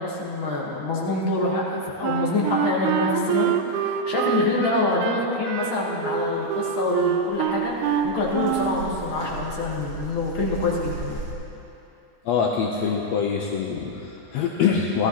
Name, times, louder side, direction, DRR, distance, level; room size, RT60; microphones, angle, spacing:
voice 1, 0.0-11.2, left 2 dB, 50° left, -4 dB, 1.8 m, -26 dB
Wind instrument woodwind instrument, 2.0-8.8, right 8 dB, 90° right, 2.1 m, -26 dB
sound 1, 6.9-7.0 7.1-11.3, right 3 dB, 45° right, 2.0 m, -36 dB
voice 2, 12.3-15.1, left 6 dB, 75° left, 0 dB, 1.7 m, -24 dB
17.0 x 13.5 x 2.9 m, 2.9 s
omnidirectional pair, 3.4 m